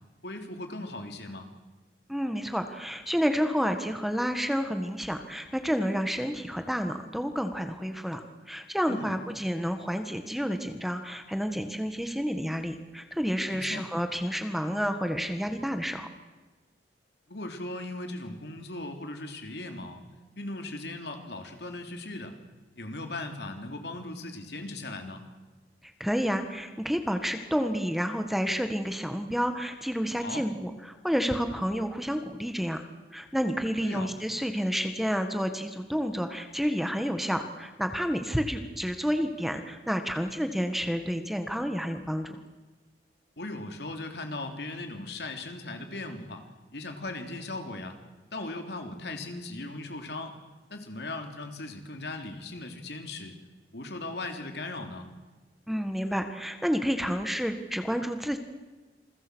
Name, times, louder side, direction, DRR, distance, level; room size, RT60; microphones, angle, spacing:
voice 1, 0.2-1.5 8.9-9.1 13.5-13.9 17.3-20.0 20.4-22.4 22.8-25.2 30.2-30.5 33.8-34.1 43.4-46.5 46.7-48.0 48.3-50.4 50.7-53.3 53.7-55.1, left 2 dB, 65° left, 5 dB, 3.4 m, -38 dB
voice 2, 2.1-16.1 26.0-30.7 31.0-32.9 33.1-42.4 55.7-58.4, equal, ahead, 7 dB, 1.6 m, -30 dB
28.5 x 22.0 x 6.4 m, 1.3 s
head